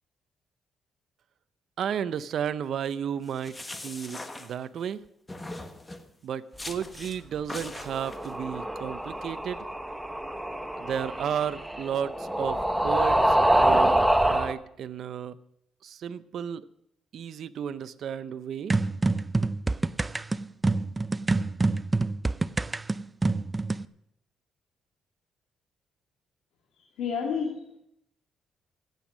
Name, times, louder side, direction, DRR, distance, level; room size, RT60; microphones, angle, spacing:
voice 1, 1.8-5.0 6.2-9.6 10.8-14.0 14.2-15.4 15.8-16.7 17.1-18.8, right 8 dB, 65° right, 16 dB, 0.6 m, -33 dB
sound 1, 3.2-4.9 5.3-6.1 6.6-7.2 7.5-8.3, left 2 dB, 20° left, 1.3 m, -41 dB
sound 2, 7.8-14.5, right 1 dB, 5° right, 1.0 m, -25 dB
sound 3, 18.7-23.8, right 3 dB, 20° right, 0.4 m, -26 dB
voice 2, 27.0-27.8, left 6 dB, 80° left, -1 dB, 2.4 m, -30 dB
14.5 x 9.0 x 6.1 m, 0.76 s
cardioid pair, 90°, 0 cm